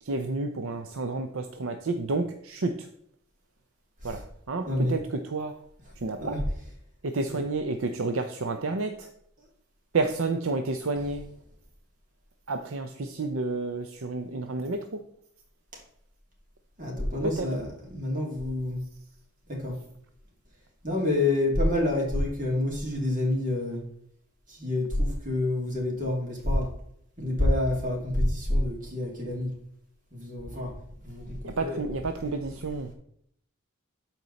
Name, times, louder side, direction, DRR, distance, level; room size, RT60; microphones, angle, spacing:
voice 1, 0.0-2.9 4.0-4.2 4.5-5.5 6.0-6.4 7.0-9.1 9.9-11.2 12.5-15.0 17.4-17.5 31.4-32.9, right 3 dB, 65° right, 6 dB, 0.6 m, -30 dB
voice 2, 16.8-18.8 19.5-19.8 20.8-23.8 24.5-26.7 27.2-29.5 30.1-30.7 31.0-31.8, left 1 dB, 40° right, -1 dB, 2.9 m, -28 dB
13.0 x 4.5 x 4.1 m, 0.70 s
head